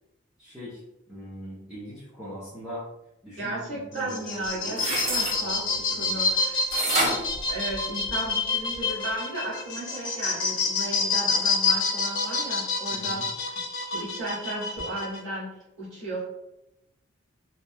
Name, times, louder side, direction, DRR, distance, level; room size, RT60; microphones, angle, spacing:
voice 1, 0.4-0.8 1.1-2.8 3.2-6.3 12.9-13.3, equal, 5° right, -12 dB, 0.6 m, -42 dB
voice 2, 3.4-6.7 7.5-16.2, right 1 dB, 70° right, -6 dB, 1.2 m, -35 dB
sound 1, 3.9-15.2, left 4 dB, 60° left, 0.5 m, -28 dB
sound 2, 4.7-5.4 6.7-8.3 8.7-8.8, right 1 dB, 35° right, 0.8 m, -28 dB
2.8 x 2.2 x 2.2 m, 0.87 s
head